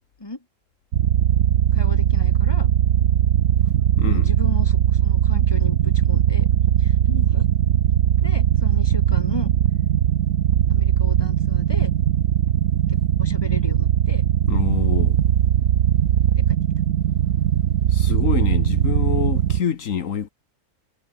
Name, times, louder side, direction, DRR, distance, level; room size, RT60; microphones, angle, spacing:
sound 1, 0.9-19.6, right 10 dB, 85° right, 1.3 m, -19 dB
voice 1, 1.7-2.7 4.1-6.5 6.8-7.5 8.2-9.5 10.7-11.9 12.9-14.2 16.4-16.6, left 2 dB, 20° left, 2.3 m, -36 dB
voice 2, 4.0-4.3 14.5-15.2 17.9-20.3, left 8 dB, 75° left, 1.5 m, -26 dB
omnidirectional pair, 1.4 m